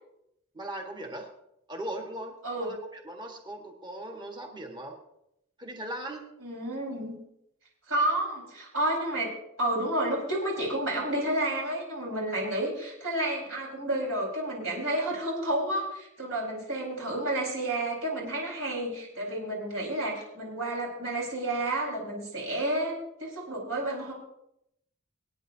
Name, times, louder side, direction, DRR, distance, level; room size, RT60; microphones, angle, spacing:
voice 1, 0.5-1.3 1.7-5.0 5.6-6.3, right 1 dB, 20° right, 2 dB, 1.4 m, -39 dB
voice 2, 6.4-7.2 7.9-24.1, right 1 dB, 65° right, -3 dB, 4.4 m, -30 dB
24.0 x 9.6 x 2.7 m, 0.80 s
head